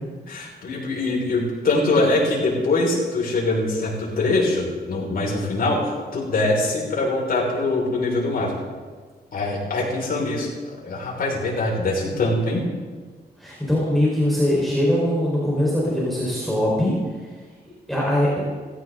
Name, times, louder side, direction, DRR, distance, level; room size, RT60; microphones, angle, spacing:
voice 1, 0.3-8.5 9.3-10.5 10.8-12.6, left 2 dB, 60° left, -3 dB, 5.8 m, -23 dB
voice 2, 13.4-16.9 17.9-18.3, left 1 dB, ahead, -7 dB, 4.8 m, -21 dB
19.0 x 16.5 x 4.0 m, 1.5 s
wide cardioid pair, 130°, 17 cm